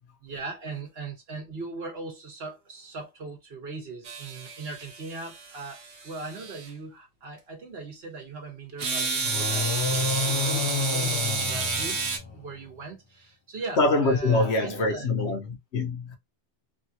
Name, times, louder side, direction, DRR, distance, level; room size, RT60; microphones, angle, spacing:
voice 1, 0.2-12.0 12.3-15.4, right 3 dB, 65° right, 1.3 m, -39 dB
sound 1, 4.0-6.7 8.8-12.2, right 4 dB, 80° right, 1.2 m, -30 dB
sound 2, 9.2-12.6, left 4 dB, 40° left, 0.4 m, -29 dB
voice 2, 13.8-16.1, left 2 dB, 75° left, 1.1 m, -24 dB
3.5 x 2.4 x 2.8 m
omnidirectional pair, 1.1 m